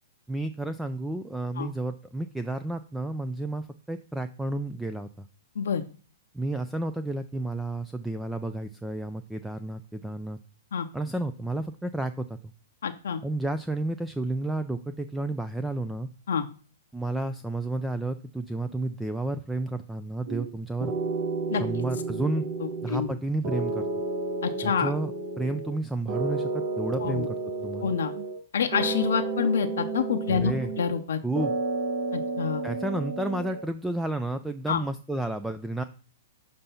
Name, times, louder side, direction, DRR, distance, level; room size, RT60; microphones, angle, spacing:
voice 1, 0.3-5.1 6.3-10.4 10.9-12.4 13.2-16.1 16.9-20.9 21.5-22.4 22.8-23.9 24.6-25.1 25.4-27.9 30.3-30.7 31.2-31.5 32.6-35.8, right 2 dB, 5° right, 10 dB, 0.3 m, -31 dB
voice 2, 12.8-13.2 16.3-16.4 21.5-21.6 22.9-23.1 24.4-24.9 27.0-27.3 27.8-28.1 28.5-31.2 32.1-32.6 34.7-34.8, left 7 dB, 80° left, 5 dB, 0.6 m, -27 dB
sound 1, 20.3-20.5 20.8-23.1 23.4-25.8 26.1-28.4 28.7-31.0 31.4-33.7, right 3 dB, 50° right, 1.4 m, -31 dB
6.8 x 2.6 x 5.6 m, 0.39 s
hypercardioid pair, 130°, 0 cm